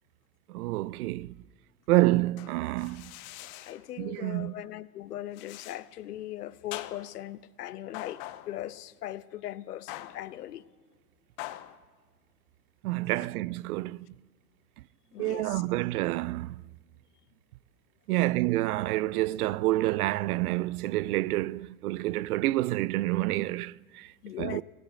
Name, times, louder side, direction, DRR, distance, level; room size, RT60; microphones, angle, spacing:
voice 1, 0.5-1.3 1.9-3.1 4.0-4.5 12.8-14.1 15.2-16.6 18.1-24.1 24.4-24.6, right 18 dB, 75° right, 0.5 m, -28 dB
sound 1, 2.4-3.9 5.3-5.9 6.7-7.3 7.9-8.7 9.9-10.4 11.4-11.8, left 15 dB, 50° left, 1.1 m, -43 dB
voice 2, 3.3-10.6 13.2-13.3 15.1-15.6 24.2-24.6, left 13 dB, 85° left, 0.7 m, -40 dB
17.0 x 9.2 x 8.6 m
hypercardioid pair, 90°, 45 cm